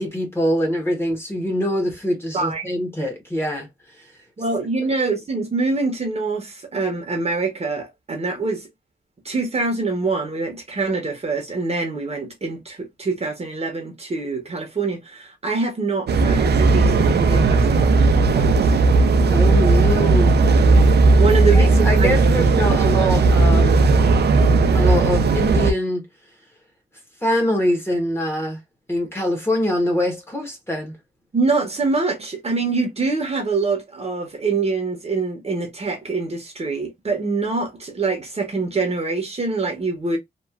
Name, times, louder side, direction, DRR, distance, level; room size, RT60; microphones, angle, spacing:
voice 1, 0.0-3.7 19.3-20.3 21.5-23.8 24.7-26.0 27.2-28.6 28.9-30.9, equal, 15° left, 0.9 m, -23 dB
voice 2, 2.3-2.6 4.4-8.7 9.2-18.7 21.2-22.1 31.3-40.2, right 3 dB, 40° right, 0.8 m, -25 dB
sound 1, 16.1-25.7, right 3 dB, 80° right, 0.4 m, -16 dB
3.0 x 2.3 x 2.3 m
wide cardioid pair, 175°, 17 cm